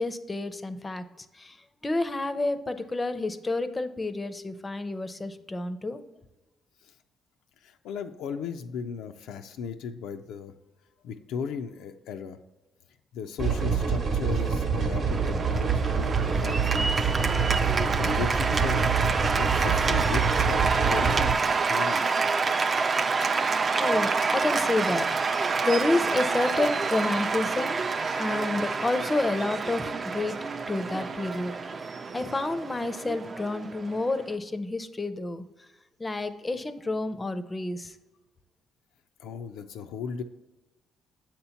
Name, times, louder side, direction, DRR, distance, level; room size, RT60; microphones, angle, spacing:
voice 1, 0.0-1.6 1.8-6.0 23.8-25.1 25.6-27.8 28.2-30.4 30.7-31.6 32.1-35.4 36.0-37.9, left 2 dB, 20° left, 11 dB, 0.4 m, -29 dB
voice 2, 7.6-10.5 11.0-12.4 13.1-17.1 17.7-18.9 19.3-22.2 39.2-40.2, left 6 dB, 90° left, 6 dB, 0.3 m, -36 dB
sound 1, 13.4-21.3, right 5 dB, 55° right, 0.9 m, -26 dB
Cheering / Applause, 15.1-34.3, right 4 dB, 40° right, 0.4 m, -28 dB
7.5 x 2.9 x 5.6 m, 1.1 s
cardioid pair, 90°, 0 cm